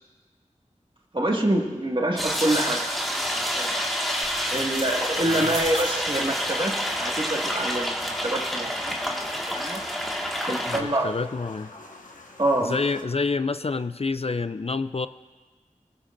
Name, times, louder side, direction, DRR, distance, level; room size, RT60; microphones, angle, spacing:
voice 1, 1.1-2.9 3.3-3.8 4.5-9.2 9.6-9.8 10.3-11.2 12.4-12.8, right 1 dB, 40° right, -1 dB, 2.0 m, -26 dB
sound 1, 2.2-10.8, equal, ahead, 1.8 m, -28 dB
sound 2, 2.3-13.0, left 2 dB, 85° left, 1.4 m, -44 dB
sound 3, 4.2-9.8, right 1 dB, 65° right, 5.4 m, -42 dB
voice 2, 10.7-11.7 12.6-15.1, left 4 dB, 50° left, 12 dB, 0.4 m, -28 dB
23.5 x 16.5 x 2.6 m, 1.4 s
wide cardioid pair, 50°, 13 cm